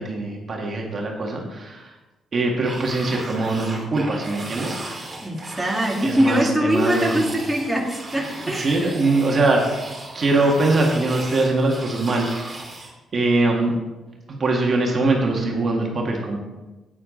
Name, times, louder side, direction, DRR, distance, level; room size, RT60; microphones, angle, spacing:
voice 1, 0.0-2.0 2.3-5.1 6.0-7.2 8.5-9.9 10.1-12.3 13.1-13.7 14.3-16.4, right 2 dB, 45° right, 0 dB, 1.9 m, -22 dB
sound 1, 2.6-12.9, right 2 dB, 20° right, 2.4 m, -36 dB
voice 2, 5.2-8.9, equal, 5° right, -2 dB, 2.1 m, -22 dB
9.4 x 9.1 x 3.9 m, 1.1 s
cardioid pair, 85°, 0 cm